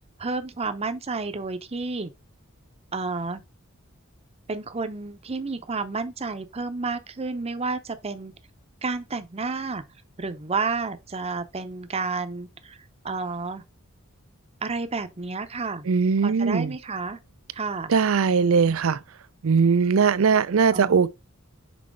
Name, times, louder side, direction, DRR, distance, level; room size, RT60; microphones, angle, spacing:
voice 1, 0.2-2.1 2.9-3.4 4.5-8.3 8.8-9.8 10.2-12.8 13.0-13.6 14.6-15.9 16.2-17.2 17.5-17.9 20.7-21.1, right 4 dB, 30° right, 0.7 m, -30 dB
voice 2, 15.9-16.7 17.9-19.0 19.4-21.1, right 5 dB, 80° right, 0.5 m, -20 dB
6.2 x 4.3 x 3.6 m
head